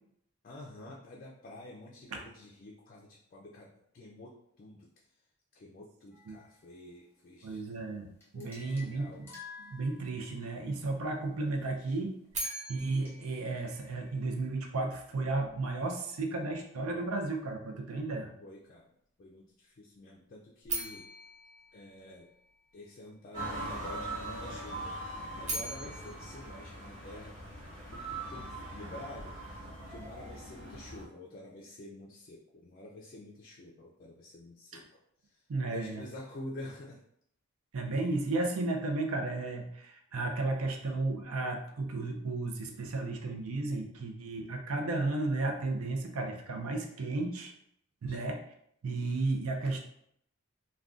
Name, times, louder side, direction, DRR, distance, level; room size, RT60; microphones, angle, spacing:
voice 1, 0.4-5.0 5.5-7.7 8.3-9.3 11.6-12.0 18.4-18.9 19.2-21.1 21.7-22.3 22.7-25.0 25.3-37.0 48.1-48.2, left 2 dB, 40° left, -3 dB, 0.3 m, -49 dB
sound 1, 6.1-6.8 8.2-10.5 12.2-13.1, left 4 dB, 10° left, 0.7 m, -51 dB
voice 2, 7.4-9.3 9.7-12.1 12.7-18.3 35.5-36.0 37.7-47.5 48.0-48.4 48.8-49.8, right 2 dB, 85° right, 4 dB, 0.5 m, -33 dB
sound 2, 12.3-14.5 20.6-22.8 25.2-27.6, right 2 dB, 35° right, 0.5 m, -41 dB
sound 3, 23.3-31.0, right 2 dB, 60° right, 1.2 m, -41 dB
2.4 x 2.2 x 3.6 m, 0.72 s
head